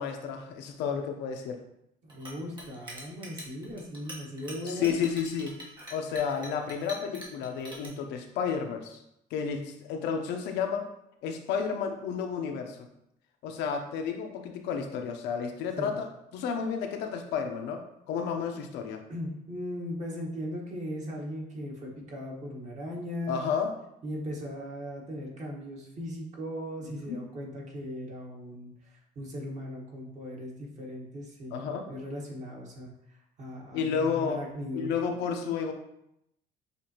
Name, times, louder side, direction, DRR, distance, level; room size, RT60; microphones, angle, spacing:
voice 1, 0.0-1.6 4.7-5.6 5.9-9.0 9.3-10.9 11.2-12.8 13.4-17.8 18.1-19.0 23.3-23.7 27.1-27.2 31.5-31.9 33.7-34.4 34.7-35.7, left 6 dB, 85° left, 4 dB, 0.7 m, -31 dB
voice 2, 2.0-5.0 15.8-15.9 19.1-23.5 24.0-34.9, equal, 45° right, -2 dB, 1.3 m, -38 dB
Chink clink, 2.1-7.9, equal, 30° right, 1.5 m, -44 dB
6.6 x 2.5 x 2.9 m, 0.80 s
cardioid pair, 110°, 17 cm